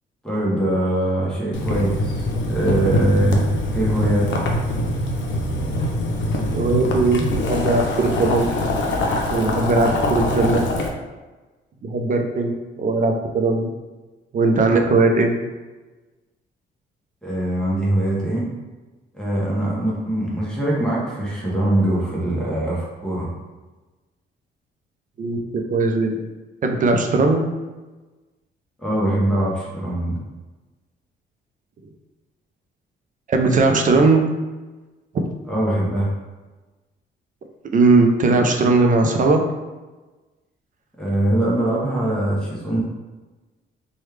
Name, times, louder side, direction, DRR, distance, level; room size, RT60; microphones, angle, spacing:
voice 1, 0.2-4.4 17.2-18.5 19.1-23.3 28.8-30.2 35.5-36.1 41.0-42.8, right 1 dB, 5° left, -7 dB, 0.9 m, -22 dB
Boiling, 1.5-10.9, left 1 dB, 70° left, 0.6 m, -23 dB
voice 2, 6.5-8.5 9.3-10.6 11.8-12.5 12.8-13.7 14.3-15.3 25.2-25.4 25.7-26.2 26.6-27.4 33.3-34.2 37.7-39.4, right 3 dB, 40° right, 4 dB, 0.5 m, -18 dB
3.1 x 2.3 x 3.2 m, 1.2 s
cardioid pair, 90°, 20 cm